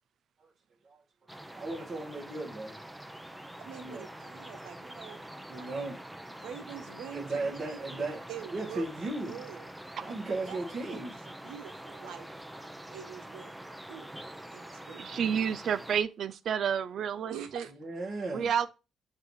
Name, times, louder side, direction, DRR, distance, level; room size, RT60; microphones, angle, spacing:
sound 1, 1.3-16.0, right 1 dB, 5° right, 0.7 m, -45 dB
voice 1, 1.5-2.8 3.8-4.1 5.5-6.0 7.1-8.2 8.5-9.4 10.0-11.1 17.8-18.5, right 2 dB, 45° right, 1.7 m, -36 dB
voice 2, 3.6-5.3 5.6-5.7 6.3-7.8 8.3-8.9 9.2-9.7 10.4-11.0 11.4-12.3 12.9-13.5 13.9-14.1 14.5-15.1 17.3-17.7, right 9 dB, 90° right, 1.0 m, -45 dB
voice 3, 15.0-17.7 18.3-18.7, right 8 dB, 60° right, 0.5 m, -30 dB
7.3 x 2.8 x 4.7 m
cardioid pair, 90°, 0 cm